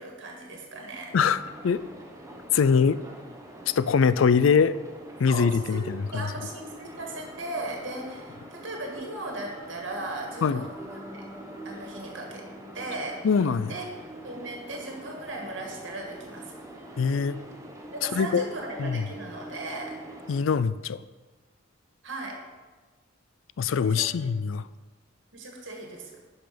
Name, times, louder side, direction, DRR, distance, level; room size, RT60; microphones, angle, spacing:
voice 1, 0.0-1.1 5.3-11.2 11.6-12.5 12.7-13.2 13.7-16.5 17.9-20.0 22.0-22.4 23.8-24.3 25.3-26.2, right 2 dB, 70° right, 1 dB, 1.7 m, -37 dB
sound 1, 1.1-20.4, right 1 dB, 15° right, 1.0 m, -45 dB
voice 2, 2.5-3.0 3.7-4.8 5.2-6.3 10.4-10.7 13.2-13.7 17.0-17.4 18.1-18.4 18.8-19.0 20.3-21.0 23.6-24.6, left 6 dB, 80° left, 15 dB, 0.4 m, -23 dB
sound 2, 10.7-15.6, left 1 dB, 5° left, 1.1 m, -50 dB
11.0 x 5.7 x 5.1 m, 1.3 s
head